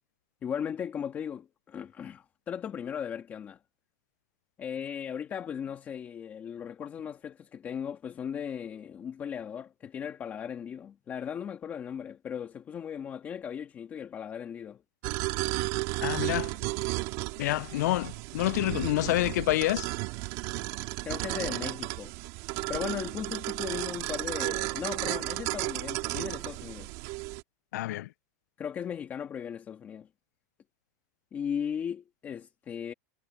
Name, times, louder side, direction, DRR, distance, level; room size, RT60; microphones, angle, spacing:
voice 1, 0.4-3.6 4.6-14.8 21.0-22.1 22.7-26.9 28.6-30.1 31.3-32.9, left 8 dB, 20° left, 1.5 m, -37 dB
sound 1, 15.0-27.4, right 23 dB, 45° right, 2.7 m, -33 dB
voice 2, 16.0-16.5 17.4-19.9 27.7-28.1, left 17 dB, 80° left, 0.3 m, -28 dB
supercardioid pair, 165°, 9 cm